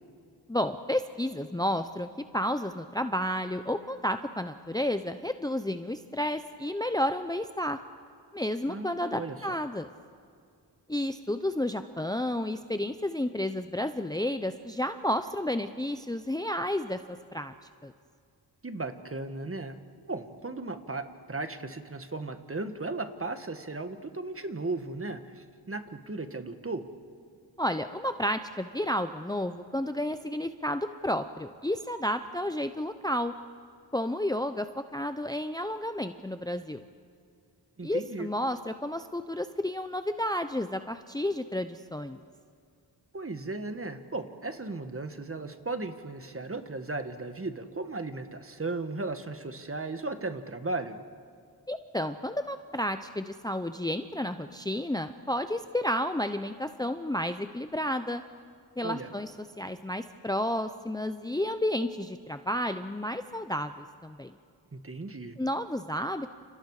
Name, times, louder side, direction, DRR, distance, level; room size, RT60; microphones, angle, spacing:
voice 1, 0.5-7.8 8.3-9.9 10.9-17.0 17.3-17.5 17.8-17.9 27.6-33.3 33.9-36.8 37.8-42.2 51.7-58.2 58.8-59.3 59.6-64.3 65.4-66.3, left 1 dB, 10° left, 9 dB, 0.7 m, -31 dB
voice 2, 8.7-9.6 18.6-19.8 20.1-26.9 37.8-38.3 43.1-51.0 58.8-59.1 64.7-65.4, right 3 dB, 30° right, 8 dB, 1.7 m, -36 dB
30.0 x 29.0 x 5.0 m, 2.2 s
wide cardioid pair, 95°, 41 cm